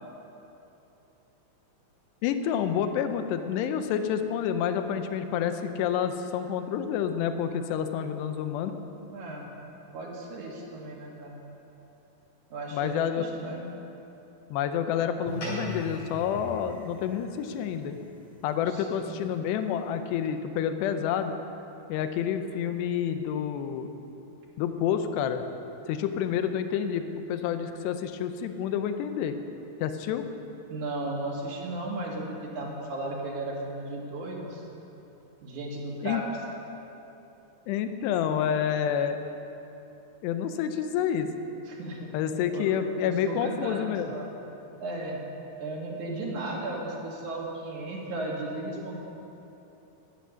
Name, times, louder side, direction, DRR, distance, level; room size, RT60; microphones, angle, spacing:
voice 1, 2.2-8.8 12.7-13.2 14.5-18.0 18.4-21.4 21.9-23.9 24.6-25.4 25.9-29.4 29.8-30.3 36.0-36.2 37.7-39.2 40.2-41.3 42.1-44.1, left 8 dB, 90° left, 8 dB, 2.9 m, -28 dB
voice 2, 9.1-9.5 9.9-11.4 12.5-13.7 18.6-19.2 30.7-34.7 35.4-36.2 41.7-42.1 42.5-42.7 43.0-44.3 44.8-45.2 45.6-49.0, right 2 dB, 55° right, -2 dB, 2.8 m, -35 dB
sound 1, 15.3-19.9, equal, 50° left, 5.4 m, -41 dB
14.0 x 11.5 x 6.4 m, 2.9 s
omnidirectional pair, 4.8 m